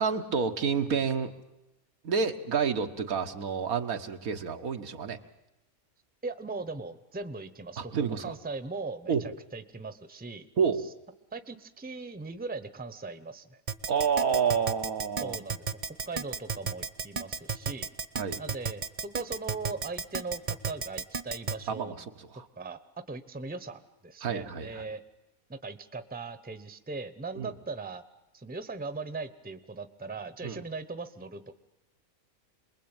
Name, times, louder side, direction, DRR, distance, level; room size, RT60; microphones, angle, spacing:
voice 1, 0.0-1.3 2.0-5.2 7.8-8.3 9.1-9.2 10.6-10.9 13.9-15.4 18.2-18.4 21.7-22.5 24.2-24.8 27.4-27.5 30.4-30.6, right 6 dB, 85° right, 6 dB, 1.8 m, -29 dB
voice 2, 6.2-10.5 11.3-13.6 15.2-15.6 16.1-17.9 18.4-21.9 22.6-22.8 23.1-25.0 25.5-28.0 28.3-31.6, right 3 dB, 10° right, 12 dB, 0.9 m, -39 dB
Keyboard (musical), 13.7-21.5, right 5 dB, 35° right, 1.1 m, -32 dB
27.5 x 21.0 x 9.0 m, 0.94 s
omnidirectional pair, 1.5 m